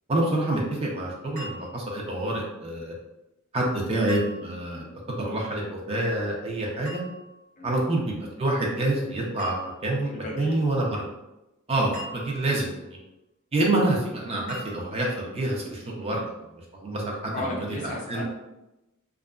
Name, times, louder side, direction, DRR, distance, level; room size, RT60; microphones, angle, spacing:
voice 1, 0.1-2.9 3.5-7.0 7.6-11.0 11.7-13.0 13.5-16.2 16.5-17.7 18.1-18.2, right 1 dB, 25° right, -2 dB, 0.4 m, -27 dB
sound 1, 1.4-2.1 4.1-4.8 6.8-7.5 9.4-10.1 11.9-12.8 14.5-15.2, right 1 dB, 45° right, 1.0 m, -43 dB
voice 2, 10.1-10.6 17.3-18.2, left 1 dB, 35° left, -2 dB, 0.5 m, -35 dB
2.7 x 2.4 x 2.3 m, 0.94 s
head